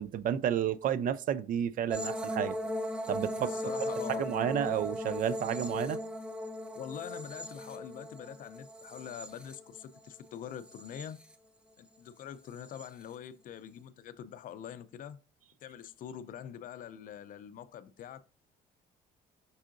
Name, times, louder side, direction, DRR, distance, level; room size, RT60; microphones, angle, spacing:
voice 1, 0.0-2.6 3.1-3.5 4.2-6.0, right 9 dB, 55° right, 0.4 m, -31 dB
sound 1, 1.9-10.1 10.5-11.3 12.6-12.9, left 1 dB, 5° right, 0.6 m, -38 dB
voice 2, 3.4-4.3 6.7-11.2 11.8-15.2 15.6-18.3, left 9 dB, 55° left, 0.4 m, -44 dB
5.5 x 3.6 x 2.5 m
cardioid pair, 110°, 17 cm